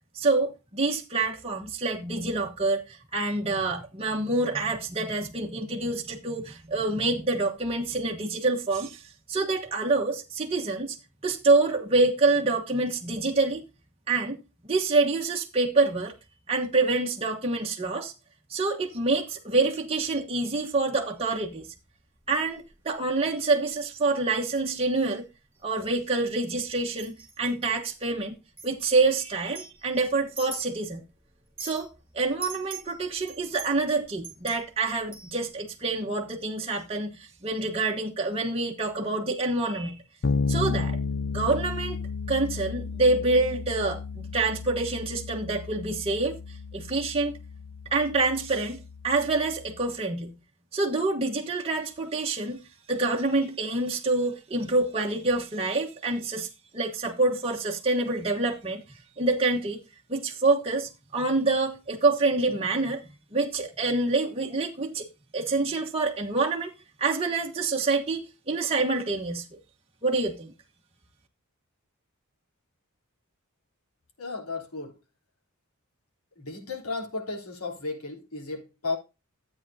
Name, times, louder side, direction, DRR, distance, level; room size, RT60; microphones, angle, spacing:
voice 1, 0.1-11.0 11.2-13.6 14.1-14.4 14.6-16.1 16.5-18.1 18.5-21.7 22.3-25.3 25.6-28.3 28.6-31.0 31.6-31.9 32.1-40.0 40.5-41.0 41.3-42.0 42.3-47.4 47.9-50.3 50.7-52.6 52.9-56.5 56.7-58.8 59.2-59.8 60.1-63.0 63.3-65.0 65.3-66.7 67.0-69.5 70.0-70.5, right 3 dB, 25° right, 1.2 m, -26 dB
sound 1, 21.1-21.4 22.5-22.7 23.3-24.0 24.4-24.5 25.0-25.3 25.5-26.5 26.9-27.7 28.6-28.7 29.4-31.0 31.3-31.9 32.4-35.5, right 3 dB, 10° right, 4.1 m, -43 dB
Bass guitar, 40.2-49.9, left 4 dB, 55° left, 0.5 m, -33 dB
voice 2, 74.2-75.0 76.3-79.0, left 3 dB, 80° left, 3.4 m, -34 dB
13.0 x 8.9 x 2.8 m
head